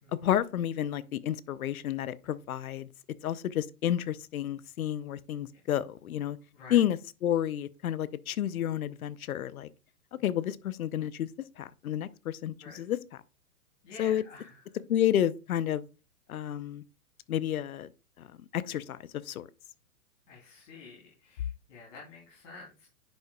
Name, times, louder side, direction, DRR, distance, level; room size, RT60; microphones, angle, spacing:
voice 1, 0.2-2.9 3.2-6.4 6.7-9.7 10.2-11.3 11.6-13.0 14.0-14.2 14.9-15.8 16.3-16.8 17.3-17.9 18.2-18.3 18.5-19.5, left 11 dB, 65° left, 0.7 m, -30 dB
voice 2, 13.8-14.6 20.3-22.9, left 4 dB, 50° left, 3.0 m, -49 dB
10.0 x 5.6 x 2.2 m
hypercardioid pair, 120°, 46 cm